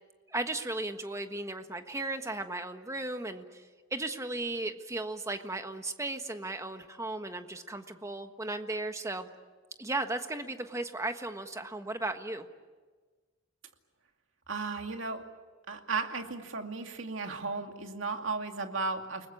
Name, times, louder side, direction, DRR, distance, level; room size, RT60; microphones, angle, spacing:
voice 1, 0.3-3.6 3.9-9.3 9.8-12.5, right 2 dB, 15° right, 7 dB, 1.4 m, -36 dB
voice 2, 14.5-15.2 15.7-19.3, right 4 dB, 75° right, 4 dB, 2.4 m, -35 dB
29.5 x 20.0 x 8.7 m, 1.4 s
head